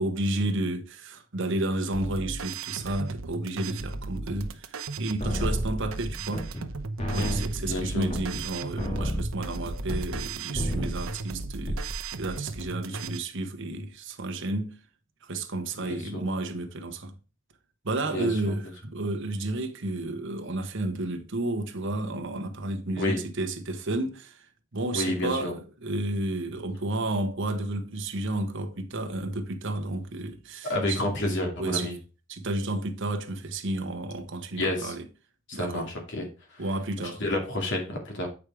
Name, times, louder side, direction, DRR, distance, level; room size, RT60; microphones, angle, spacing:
voice 1, 0.0-6.5 7.1-14.8 15.2-17.2 17.8-24.5 24.7-31.0 31.6-31.9 32.3-35.0 35.5-35.9 36.6-37.2, right 2 dB, 65° right, 1.2 m, -31 dB
sound 1, 1.9-13.2, right 3 dB, 85° right, 0.9 m, -36 dB
sound 2, 5.2-6.7 7.0-10.3 10.5-11.1 11.5-12.0, equal, 30° left, 2.1 m, -31 dB
voice 2, 7.2-8.1 12.9-13.1 15.7-16.2 18.1-18.6 23.0-23.2 24.9-25.5 30.7-31.9 34.6-34.9 35.5-36.6 37.0-38.3, left 1 dB, 60° left, 2.4 m, -30 dB
8.4 x 5.0 x 4.7 m
head